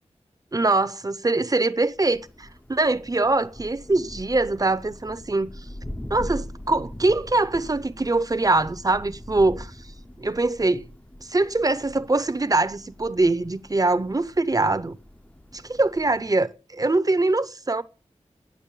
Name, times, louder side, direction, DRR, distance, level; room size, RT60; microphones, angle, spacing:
voice 1, 0.5-5.7 6.1-9.8 10.2-10.9 11.2-14.9 15.5-17.8, right 2 dB, 30° right, 0.8 m, -23 dB
Thunder, 1.8-16.4, left 1 dB, 10° left, 0.7 m, -42 dB
10.5 x 9.5 x 8.4 m
wide cardioid pair, 80°, 12 cm